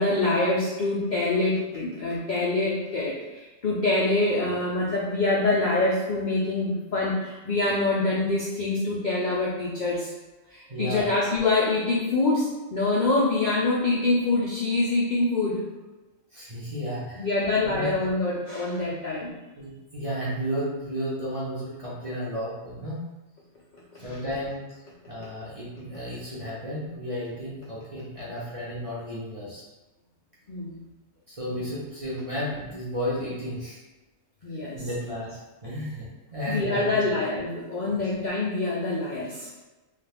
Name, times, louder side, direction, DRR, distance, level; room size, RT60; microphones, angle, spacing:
voice 1, 0.0-10.1 10.5-15.6 17.2-19.3 23.9-24.0 30.5-30.8 34.4-34.8 36.5-39.5, left 2 dB, 80° left, -5 dB, 0.4 m, -25 dB
voice 2, 10.7-11.1 16.3-17.3 17.6-17.9 18.8-19.0 19.6-23.0 24.0-24.8 25.1-29.6 31.3-33.8 34.7-36.9 37.8-38.0, equal, 35° right, -8 dB, 0.6 m, -33 dB
2.4 x 2.4 x 3.3 m, 1.1 s
omnidirectional pair, 1.4 m